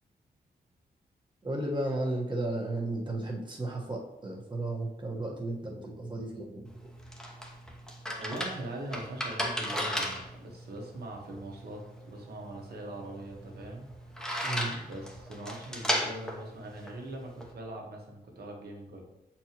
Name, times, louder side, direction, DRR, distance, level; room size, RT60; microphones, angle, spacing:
voice 1, 1.4-6.7 14.4-14.7, right 2 dB, 30° right, -2 dB, 1.3 m, -34 dB
sound 1, 6.7-17.5, equal, 5° left, 0.9 m, -36 dB
voice 2, 8.2-13.9 14.6-19.0, right 1 dB, 75° right, 0 dB, 1.4 m, -42 dB
7.5 x 4.4 x 3.0 m, 0.90 s
wide cardioid pair, 135°, 17 cm